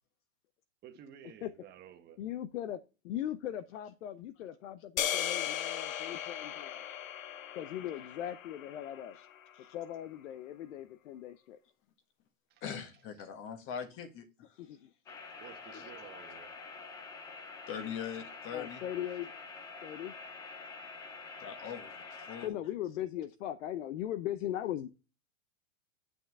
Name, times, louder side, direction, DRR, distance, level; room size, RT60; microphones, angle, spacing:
voice 1, 0.8-2.2 12.5-13.3 13.7-13.8 15.4-16.5, right 9 dB, 25° right, 1.2 m, -53 dB
voice 2, 2.2-6.8 7.5-9.2 9.7-11.6 14.6-14.9 18.5-19.3 19.8-20.1 22.4-24.9, left 11 dB, 70° left, 0.9 m, -39 dB
sound 1, 5.0-9.3, left 11 dB, 90° left, 0.9 m, -37 dB
voice 3, 12.6-14.6 15.7-15.8 17.7-18.8 21.4-22.6, left 7 dB, 30° left, 1.5 m, -42 dB
sound 2, 15.1-22.5, left 4 dB, 10° left, 0.3 m, -47 dB
9.0 x 5.9 x 3.5 m
supercardioid pair, 150°, 39 cm